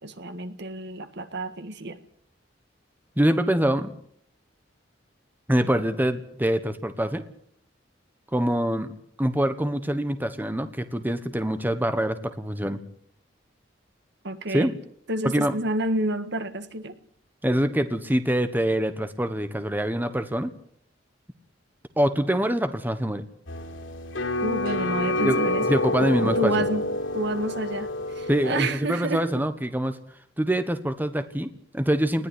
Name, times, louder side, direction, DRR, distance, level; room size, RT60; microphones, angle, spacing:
voice 1, 0.0-2.0 14.2-14.8 15.1-16.9 24.4-26.8 27.1-29.4, right 1 dB, 65° right, 10 dB, 1.8 m, -29 dB
voice 2, 3.2-3.9 5.5-7.2 8.3-8.9 9.2-12.8 14.5-14.7 15.2-15.5 17.4-20.5 22.0-23.2 25.2-25.4 25.7-26.5 28.3-30.0 30.4-32.3, right 1 dB, 10° right, 10 dB, 1.2 m, -25 dB
sound 1, 23.5-28.7, left 2 dB, 90° left, 3.9 m, -28 dB
20.0 x 14.5 x 10.0 m, 0.68 s
head